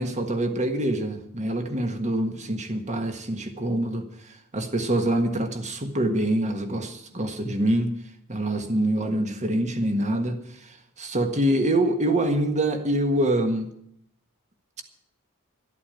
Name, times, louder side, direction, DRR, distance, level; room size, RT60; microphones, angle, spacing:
voice 1, 0.0-4.1 4.5-7.9 8.3-13.7, right 1 dB, 35° right, 6 dB, 1.6 m, -25 dB
13.0 x 8.5 x 8.9 m, 0.73 s
head